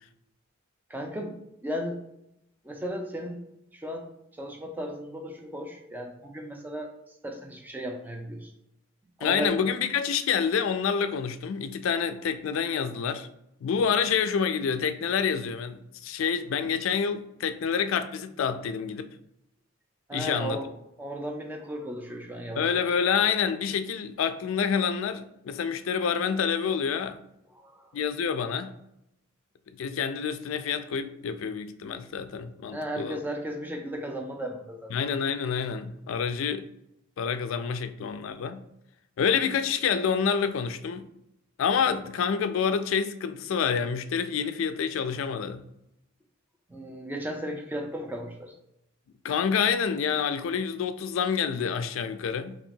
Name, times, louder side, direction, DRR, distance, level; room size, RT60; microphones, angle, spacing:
voice 1, 0.9-2.0 2.6-3.4 3.7-4.1 4.3-6.9 7.2-8.5 9.2-9.6 20.1-20.7 21.0-22.9 27.6-28.0 32.7-34.9 46.7-48.5, equal, 10° right, 0.5 m, -35 dB
voice 2, 9.2-13.3 13.6-19.1 20.1-20.6 22.6-27.2 27.9-28.7 29.8-33.2 34.9-36.6 37.2-38.6 39.2-41.1 41.6-45.6 49.2-52.6, left 6 dB, 70° left, 0.3 m, -27 dB
2.9 x 2.7 x 4.3 m
head